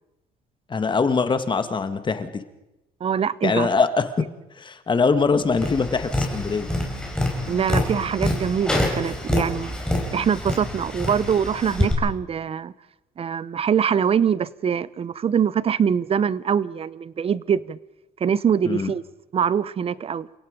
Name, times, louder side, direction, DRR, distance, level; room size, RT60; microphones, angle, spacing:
voice 1, 0.7-2.4 3.4-4.1 4.6-6.7 18.6-18.9, left 4 dB, 30° left, 1.7 m, -22 dB
voice 2, 3.0-3.7 7.5-9.7 10.1-12.7 13.2-17.8 18.2-19.0 19.3-20.3, right 7 dB, 35° right, 0.7 m, -23 dB
Tap, 5.5-11.9, left 1 dB, 5° left, 5.2 m, -26 dB
29.0 x 17.0 x 5.2 m
cardioid pair, 110°, 17 cm